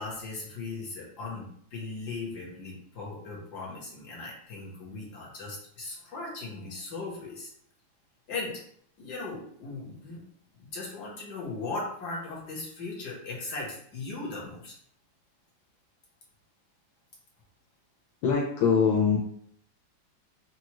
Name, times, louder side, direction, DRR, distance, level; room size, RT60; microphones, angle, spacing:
voice 1, 0.0-7.5 8.3-8.6 9.0-10.2 10.6-14.7, left 3 dB, 55° left, -4 dB, 1.7 m, -38 dB
voice 2, 18.2-19.2, left 6 dB, 75° left, -3 dB, 1.5 m, -23 dB
6.0 x 2.5 x 3.0 m, 0.65 s
omnidirectional pair, 2.3 m